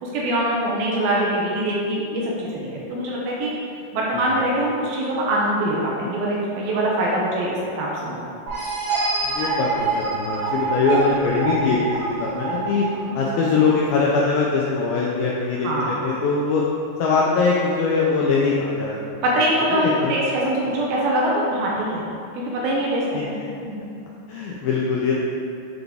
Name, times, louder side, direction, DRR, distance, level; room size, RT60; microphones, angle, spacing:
voice 1, 0.0-3.5 3.9-8.3 12.9-13.2 15.6-16.0 19.2-22.0 22.3-23.4 23.6-23.8, right 1 dB, 75° right, -4 dB, 2.4 m, -23 dB
sound 1, 8.5-13.9, right 3 dB, 55° right, 2.4 m, -26 dB
voice 2, 9.2-12.9 13.2-16.6 17.0-19.1 19.4-20.2 23.1-23.3 24.3-25.2, left 4 dB, 85° left, -4 dB, 2.1 m, -22 dB
7.9 x 3.9 x 3.5 m, 2.5 s
omnidirectional pair, 4.7 m